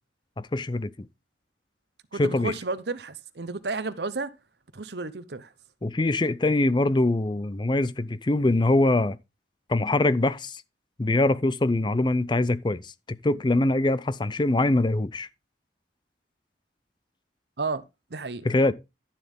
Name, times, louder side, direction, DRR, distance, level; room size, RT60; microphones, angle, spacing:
voice 1, 0.4-0.9 2.2-2.5 5.8-9.2 9.7-10.6 11.0-15.3 18.4-18.7, left 2 dB, 25° left, 0.5 m, -23 dB
voice 2, 2.1-4.3 4.7-5.5 17.6-17.8 18.1-18.4, right 3 dB, 70° right, 0.8 m, -32 dB
11.5 x 7.3 x 3.6 m
head